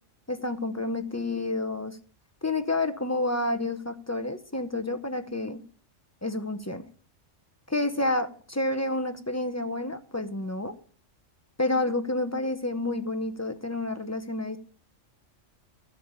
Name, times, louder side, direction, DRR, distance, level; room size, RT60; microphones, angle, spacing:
voice 1, 0.3-2.0 2.4-5.6 6.2-6.8 7.7-10.7 11.6-14.6, left 2 dB, 15° left, 9 dB, 0.7 m, -29 dB
12.0 x 6.6 x 6.8 m, 0.43 s
omnidirectional pair, 1.3 m